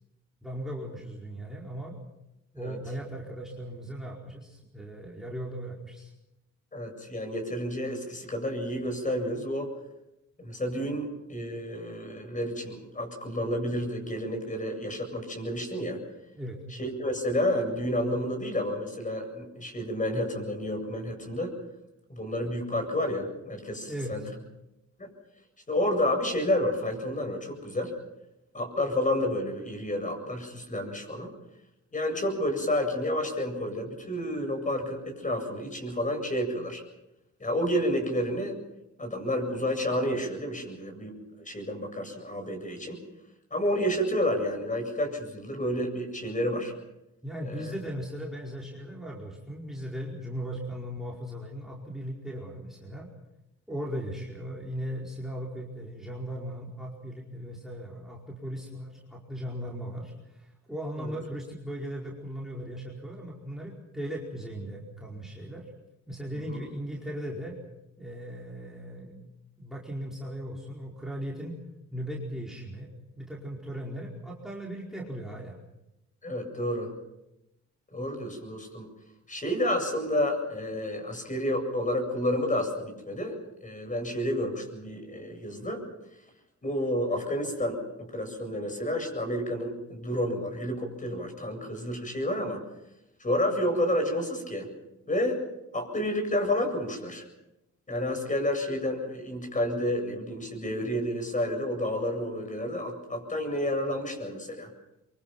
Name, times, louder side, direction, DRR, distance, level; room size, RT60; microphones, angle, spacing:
voice 1, 0.4-2.0 2.5-6.1 16.3-16.6 23.8-24.2 47.2-53.1 53.7-65.7 66.1-67.6 68.0-69.2 69.6-71.6 71.9-72.9 73.2-75.6, equal, ahead, -2 dB, 4.8 m, -38 dB
voice 2, 6.7-9.7 10.4-16.0 16.7-21.6 22.1-24.2 25.0-25.1 25.7-27.9 28.5-31.3 31.9-36.8 37.4-38.5 39.0-43.0 43.5-46.7 47.4-47.7 61.0-61.1 66.5-66.7 76.2-76.9 77.9-78.9 79.3-85.8 86.6-87.8 88.1-92.6 93.2-94.7 95.1-95.4 95.7-97.2 97.9-104.7, left 1 dB, 25° left, 5 dB, 8.0 m, -30 dB
25.0 x 23.5 x 6.0 m, 0.91 s
cardioid pair, 90°, 30 cm